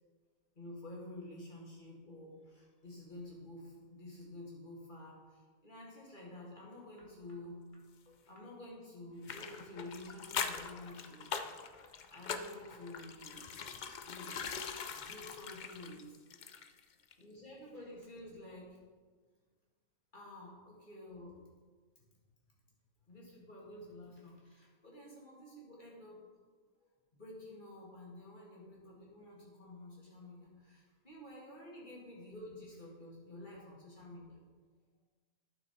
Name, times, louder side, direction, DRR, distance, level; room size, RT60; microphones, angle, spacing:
voice 1, 0.6-13.4 14.0-14.4 14.9-16.2 17.2-18.8 20.1-21.4 23.1-26.2 26.8-34.4, left 1 dB, 35° left, -4 dB, 2.4 m, -50 dB
sound 1, 9.2-16.8 17.1-17.2, left 6 dB, 75° left, 0.4 m, -42 dB
11.0 x 6.0 x 4.4 m, 1.4 s
omnidirectional pair, 1.5 m